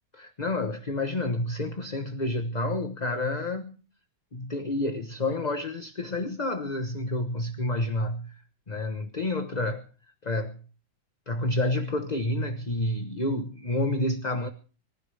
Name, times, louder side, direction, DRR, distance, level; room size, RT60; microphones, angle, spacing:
voice 1, 0.2-3.7 4.3-8.3 8.7-9.9 10.2-10.6 11.3-14.5, left 2 dB, 25° left, 1.1 m, -29 dB
25.5 x 15.0 x 3.5 m
omnidirectional pair, 2.1 m